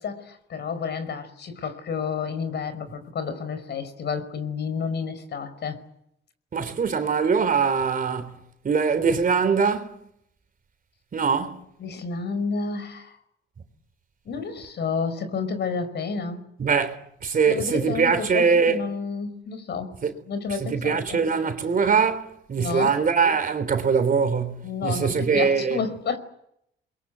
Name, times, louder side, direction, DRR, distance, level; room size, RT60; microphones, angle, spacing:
voice 1, 0.0-5.8 11.8-13.2 14.3-16.5 17.5-19.9 20.3-21.2 22.6-23.0 24.6-26.2, left 5 dB, 60° left, 5.1 m, -30 dB
voice 2, 6.5-8.4 8.6-10.0 11.1-11.6 16.6-18.8 20.0-20.1 20.7-25.8, right 5 dB, 45° right, 3.5 m, -22 dB
28.5 x 22.5 x 8.3 m
cardioid pair, 90°, 20 cm